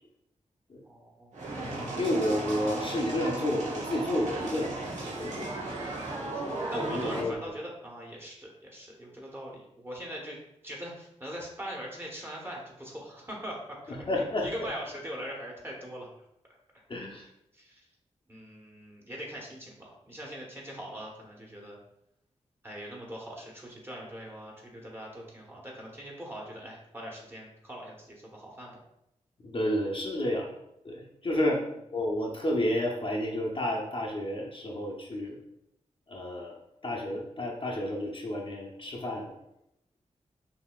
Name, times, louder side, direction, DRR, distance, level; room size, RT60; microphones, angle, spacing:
voice 1, 0.8-1.3 6.3-6.4 6.7-10.4 10.6-16.1 17.2-17.8 18.3-21.8 22.6-28.8 31.5-31.6, equal, 20° right, -2 dB, 1.1 m, -41 dB
sound 1, 1.3-7.2, right 2 dB, 70° right, 1.2 m, -35 dB
voice 2, 2.0-5.5 6.7-7.3 13.9-14.5 16.9-17.2 29.4-30.5 30.8-31.6 31.9-35.4 36.1-36.5 36.8-39.4, left 1 dB, 45° left, -2 dB, 0.7 m, -31 dB
5.7 x 2.7 x 2.4 m, 0.82 s
wide cardioid pair, 85°, 13 cm